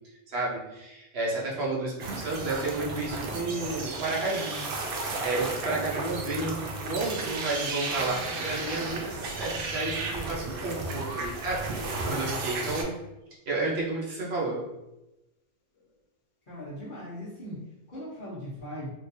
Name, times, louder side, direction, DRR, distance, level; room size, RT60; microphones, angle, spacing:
voice 1, 0.3-4.6 5.2-13.0 13.5-14.6, right 2 dB, 50° right, -4 dB, 0.9 m, -31 dB
sound 1, 2.0-12.8, right 3 dB, 70° right, 0.5 m, -33 dB
sound 2, 15.7-15.9, equal, 65° left, 1.0 m, -55 dB
voice 2, 16.5-18.9, equal, 40° left, -11 dB, 1.1 m, -39 dB
3.7 x 2.5 x 2.7 m, 0.93 s
omnidirectional pair, 1.5 m